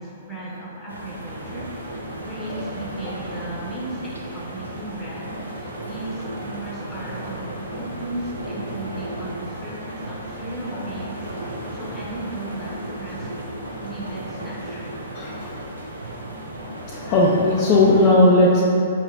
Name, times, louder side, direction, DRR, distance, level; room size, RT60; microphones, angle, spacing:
voice 1, 0.0-1.7 2.2-11.3 11.7-13.4 13.8-15.0, right 1 dB, 10° left, -7 dB, 0.8 m, -35 dB
sound 1, 0.9-18.1, right 1 dB, 80° right, 0.5 m, -34 dB
voice 2, 15.1-15.5 16.9-18.6, left 2 dB, 35° left, -5 dB, 0.4 m, -17 dB
4.7 x 2.8 x 2.4 m, 2.7 s
figure-of-eight pair, 115°, 0 cm